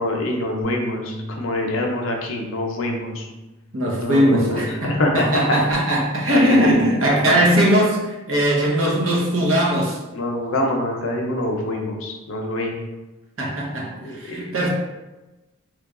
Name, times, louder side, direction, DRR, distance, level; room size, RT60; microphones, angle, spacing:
voice 1, 0.0-3.3 4.0-5.6 6.3-6.8 7.1-7.4 10.1-12.8 13.9-14.4, left 1 dB, 70° left, 1 dB, 0.6 m, -25 dB
sound 1, 0.6-6.9, equal, 40° right, 0.7 m, -40 dB
voice 2, 3.7-10.0 13.4-14.7, equal, 65° right, -2 dB, 0.8 m, -20 dB
3.2 x 2.3 x 3.6 m, 1.1 s
head